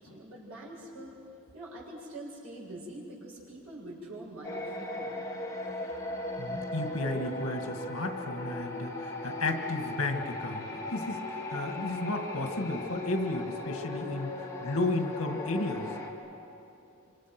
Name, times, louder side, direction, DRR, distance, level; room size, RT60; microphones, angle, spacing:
voice 1, 0.0-5.2, right 1 dB, 90° right, -5 dB, 7.7 m, -45 dB
sound 1, 4.4-16.1, left 2 dB, 15° left, 2.1 m, -38 dB
voice 2, 6.4-15.9, left 2 dB, 80° left, 5 dB, 2.0 m, -33 dB
26.5 x 26.5 x 6.1 m, 2.8 s
head